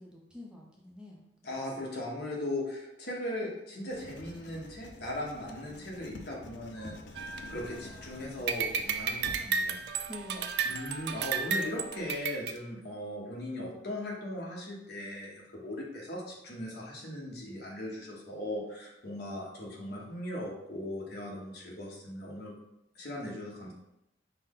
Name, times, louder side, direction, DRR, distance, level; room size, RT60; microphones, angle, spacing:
voice 1, 0.0-1.3 1.6-1.9 10.1-10.7, left 1 dB, 5° right, -2 dB, 0.6 m, -47 dB
voice 2, 1.4-7.0 7.5-10.0 10.6-22.5 22.9-23.7, left 1 dB, 60° left, -2 dB, 1.1 m, -38 dB
Writing, 3.9-9.5, left 2 dB, 85° left, 0.5 m, -48 dB
sound 1, 7.2-8.1 8.5-12.5, right 5 dB, 65° right, 0.3 m, -33 dB
5.7 x 2.1 x 3.7 m, 0.86 s
head